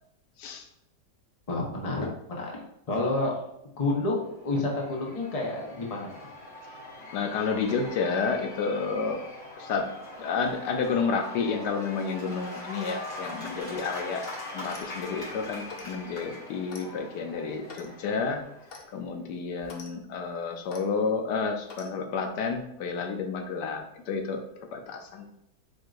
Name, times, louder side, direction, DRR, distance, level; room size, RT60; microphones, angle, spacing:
voice 1, 1.5-2.6 2.9-3.3 3.8-6.3, left 2 dB, 30° left, -1 dB, 0.8 m, -29 dB
Cheering / Applause / Crowd, 4.3-19.0, left 2 dB, 45° left, 1.9 m, -42 dB
voice 2, 7.1-9.2 9.6-9.9 10.2-14.2 14.5-18.4 18.9-24.4 24.7-25.4, left 5 dB, 90° left, 5 dB, 1.3 m, -30 dB
Clock, 14.6-15.0 15.7-16.0 16.7-16.9 17.7-17.9 18.7-18.9 19.6-19.9 20.7-20.9 21.7-21.9, left 4 dB, 65° left, 0.5 m, -45 dB
4.6 x 4.5 x 2.5 m, 0.81 s
omnidirectional pair, 1.8 m